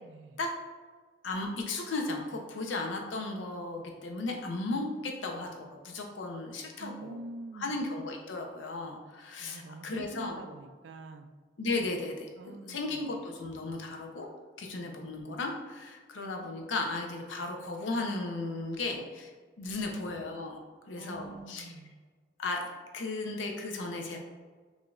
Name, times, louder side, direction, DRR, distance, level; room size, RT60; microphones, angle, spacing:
voice 1, 0.0-0.4 6.8-7.8 9.4-11.4 12.4-13.1 14.7-15.1 20.9-21.9, right 2 dB, 70° right, 7 dB, 0.3 m, -46 dB
voice 2, 1.2-7.2 7.5-10.4 11.6-14.3 14.6-19.3 19.6-20.6 20.9-21.7 22.4-22.7 22.9-24.2, left 2 dB, 80° left, 2 dB, 0.6 m, -35 dB
4.8 x 2.6 x 2.4 m, 1.5 s
head